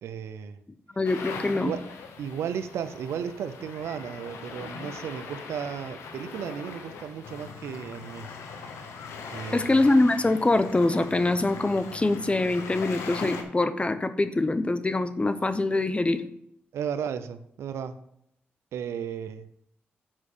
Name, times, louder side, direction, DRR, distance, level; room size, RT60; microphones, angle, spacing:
voice 1, 0.0-0.6 1.6-1.8 2.2-8.3 9.3-9.8 16.7-17.9 18.7-19.5, right 8 dB, 85° right, 12 dB, 0.6 m, -34 dB
sound 1, 1.0-13.4, left 5 dB, 90° left, 1.0 m, -40 dB
voice 2, 1.0-1.7 9.5-16.2, left 2 dB, 25° left, 11 dB, 0.9 m, -24 dB
7.4 x 4.9 x 6.6 m, 0.74 s
supercardioid pair, 50°, 5 cm